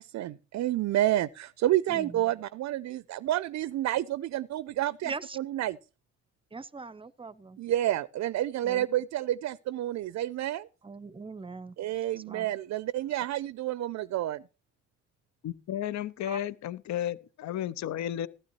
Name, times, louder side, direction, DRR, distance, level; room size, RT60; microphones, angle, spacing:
voice 1, 0.1-5.8 7.6-10.7 11.8-14.4, right 13 dB, 65° right, 0.5 m, -29 dB
voice 2, 1.9-2.2 5.0-5.4 6.5-7.6 8.6-8.9 10.8-11.8 12.1-12.5 16.2-16.4, right 4 dB, 15° right, 0.6 m, -41 dB
voice 3, 15.4-18.3, left 11 dB, 65° left, 0.7 m, -33 dB
15.5 x 12.0 x 3.0 m
cardioid pair, 90°, 30 cm